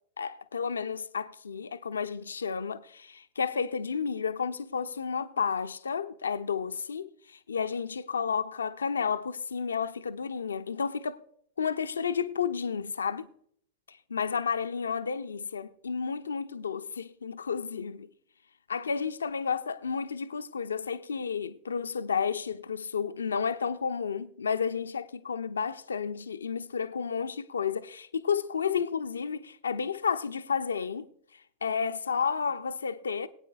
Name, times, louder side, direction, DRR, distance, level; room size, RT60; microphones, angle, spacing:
voice 1, 0.2-11.2 11.6-13.3 13.9-18.1 18.7-33.3, left 6 dB, 70° left, 0.5 m, -32 dB
21.5 x 9.0 x 2.3 m
figure-of-eight pair, 90°, 0 cm